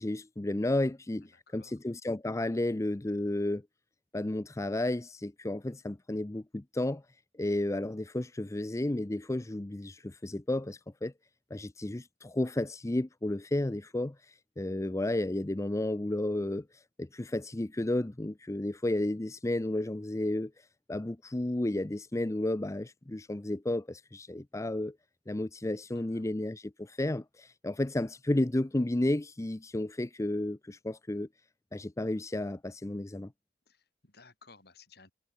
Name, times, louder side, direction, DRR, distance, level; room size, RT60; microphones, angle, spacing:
voice 1, 0.0-3.6 4.1-7.0 7.4-11.1 11.5-25.0 25.3-31.3 31.7-33.3, left 1 dB, 20° left, 0.6 m, -32 dB
voice 2, 25.9-26.4 33.7-35.1, left 4 dB, 65° left, 5.4 m, -58 dB
head